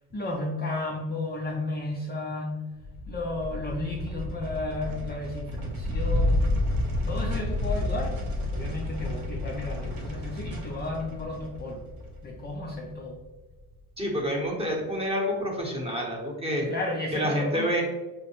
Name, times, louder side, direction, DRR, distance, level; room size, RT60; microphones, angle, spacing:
voice 1, 0.1-2.6 3.1-6.5 7.1-11.8 12.2-13.2 16.7-17.8, left 2 dB, 25° left, -2 dB, 0.5 m, -33 dB
sound 1, 2.8-13.4, left 1 dB, 60° right, 0.8 m, -30 dB
voice 2, 14.0-16.7 17.1-17.8, equal, 15° right, -1 dB, 0.9 m, -28 dB
5.5 x 2.0 x 2.9 m, 1.2 s
cardioid pair, 115°, 40 cm